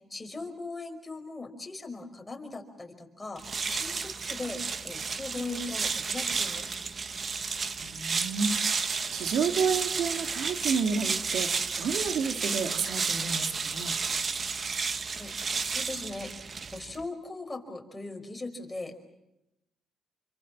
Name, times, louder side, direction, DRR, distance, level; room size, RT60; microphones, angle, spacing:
voice 1, 0.1-6.8 15.1-16.3 16.6-19.0, left 2 dB, 15° left, 4 dB, 5.1 m, -39 dB
sound 1, 3.4-17.0, right 5 dB, 40° right, 1.3 m, -32 dB
voice 2, 7.8-14.0, right 5 dB, 75° right, 6 dB, 2.3 m, -31 dB
28.0 x 25.0 x 7.4 m, 0.89 s
cardioid pair, 90°, 0 cm